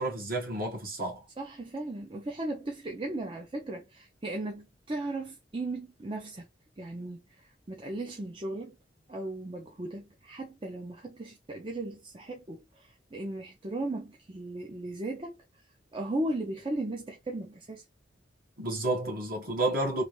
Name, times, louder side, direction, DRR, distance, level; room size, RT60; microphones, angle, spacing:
voice 1, 0.0-1.2 18.6-20.0, right 2 dB, 50° right, 1.4 m, -30 dB
voice 2, 1.4-6.5 6.8-7.2 7.7-8.7 9.1-15.4 15.9-17.8, right 2 dB, 30° right, 0.6 m, -36 dB
3.3 x 2.6 x 3.0 m
head